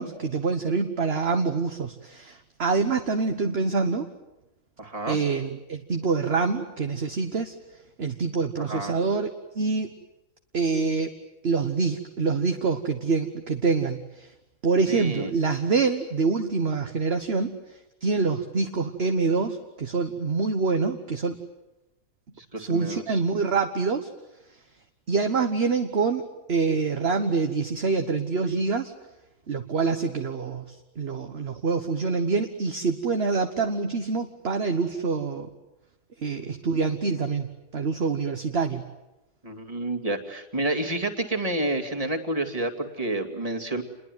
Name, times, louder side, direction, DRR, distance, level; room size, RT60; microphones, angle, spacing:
voice 1, 0.0-4.1 5.1-7.5 8.0-9.9 10.5-11.1 11.4-14.3 14.6-17.6 18.0-21.4 22.6-24.1 25.1-28.9 29.5-30.6 31.0-35.5 36.2-38.8, right 4 dB, 40° right, 6 dB, 1.4 m, -26 dB
voice 2, 4.8-5.2 8.6-8.9 14.9-15.3 22.4-23.2 39.4-43.8, right 2 dB, 20° right, 3 dB, 2.6 m, -29 dB
28.5 x 21.5 x 9.3 m, 0.97 s
omnidirectional pair, 1.7 m